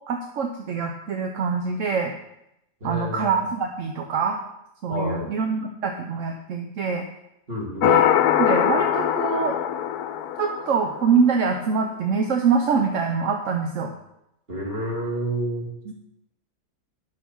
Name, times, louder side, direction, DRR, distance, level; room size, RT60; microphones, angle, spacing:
voice 1, 0.1-2.1 2.8-4.4 4.8-7.0 7.8-8.1 8.4-9.6 10.4-13.9 15.9-16.0, right 5 dB, 60° right, 3 dB, 1.0 m, -24 dB
voice 2, 2.8-3.3 4.9-5.3 7.5-8.0 14.5-15.7, equal, 35° right, -3 dB, 3.0 m, -29 dB
sound 1, 7.8-11.2, left 10 dB, 75° left, 1.1 m, -22 dB
10.0 x 6.7 x 5.5 m, 0.84 s
omnidirectional pair, 1.7 m